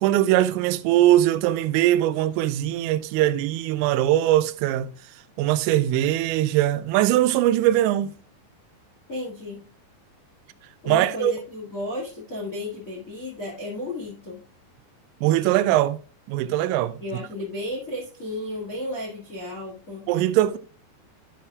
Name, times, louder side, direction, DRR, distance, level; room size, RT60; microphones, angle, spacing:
voice 1, 0.0-4.9 5.4-8.1 10.9-11.3 15.2-16.0 16.3-17.0 20.1-20.6, right 13 dB, 85° right, 2.9 m, -21 dB
voice 2, 9.1-9.6 10.8-14.4 17.0-20.1, left 1 dB, 85° left, 0.7 m, -33 dB
13.0 x 5.6 x 2.4 m
omnidirectional pair, 5.2 m